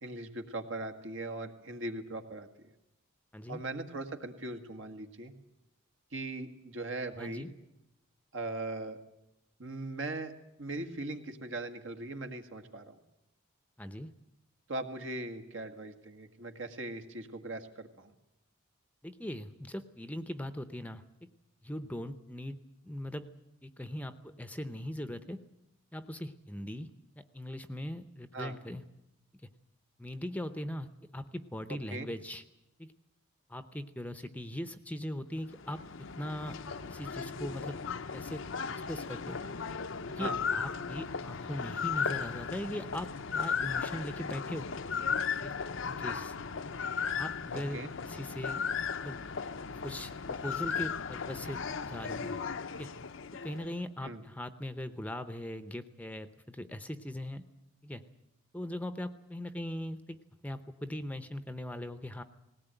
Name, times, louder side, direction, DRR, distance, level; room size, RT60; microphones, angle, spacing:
voice 1, 0.0-2.5 3.5-5.3 6.1-7.5 8.3-9.0 9.6-10.3 10.6-13.0 14.7-18.1 28.3-28.5 31.9-32.1 40.1-40.4 47.5-47.9 54.0-54.2, right 2 dB, 70° right, 6 dB, 1.9 m, -39 dB
voice 2, 7.2-7.5 13.8-14.1 19.0-21.0 21.6-22.6 22.8-23.3 23.6-25.4 25.9-26.9 27.2-28.8 30.0-32.4 32.8-32.9 33.5-35.8 36.2-36.6 36.9-37.8 38.1-38.4 38.7-39.4 40.1-44.7 45.4-45.6 45.8-46.3 47.2-48.6 49.0-49.2 49.7-52.4 52.7-52.9 53.4-57.4 57.8-58.0 58.5-60.2 60.4-62.2, left 1 dB, 5° left, 10 dB, 0.7 m, -40 dB
sound 1, 35.4-53.8, left 6 dB, 65° left, 0.7 m, -36 dB
19.5 x 17.5 x 9.1 m, 0.89 s
head